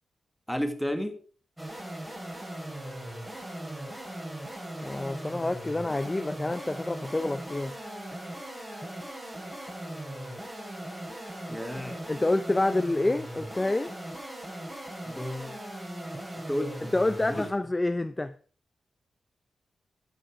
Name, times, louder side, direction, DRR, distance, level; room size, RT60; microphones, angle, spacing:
voice 1, 0.5-1.2 11.5-12.0 15.1-15.6 16.5-16.9 17.2-17.4, equal, ahead, 1.8 m, -32 dB
sound 1, 1.6-17.6, right 1 dB, 15° right, 3.4 m, -39 dB
voice 2, 4.8-7.7 12.1-13.9 16.9-18.3, left 2 dB, 20° left, 0.6 m, -28 dB
13.0 x 6.5 x 4.9 m
cardioid pair, 75°, 0 cm